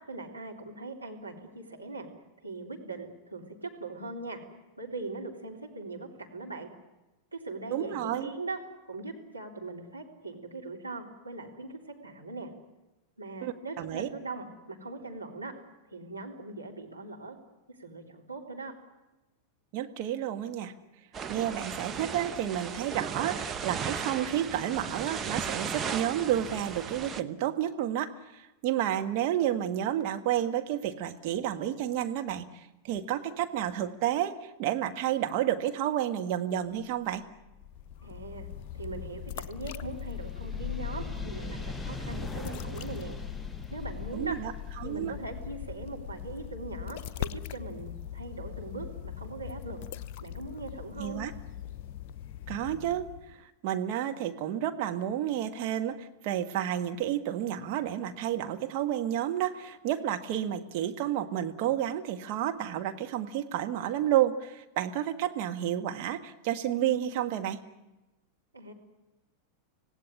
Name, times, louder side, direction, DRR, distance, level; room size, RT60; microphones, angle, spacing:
voice 1, 0.1-2.1 2.4-4.4 4.8-6.7 7.3-8.6 8.9-12.5 13.2-15.5 15.9-17.4 17.8-18.7 38.0-38.5 38.7-43.2 43.7-44.4 44.8-49.8 50.2-51.2 68.5-68.7, right 3 dB, 85° right, -1 dB, 3.6 m, -40 dB
voice 2, 7.7-8.3 13.4-14.1 19.7-20.7 21.3-37.2 44.1-44.5 44.8-45.1 51.0-51.3 52.5-67.6, right 11 dB, 45° right, 6 dB, 1.5 m, -31 dB
sound 1, 21.1-27.2, right 6 dB, 20° right, 1.1 m, -36 dB
sound 2, 37.4-48.2, left 5 dB, 5° left, 1.0 m, -41 dB
sound 3, 37.5-53.4, left 10 dB, 45° left, 0.8 m, -42 dB
26.0 x 17.5 x 9.9 m, 1.0 s
figure-of-eight pair, 90°, 0 cm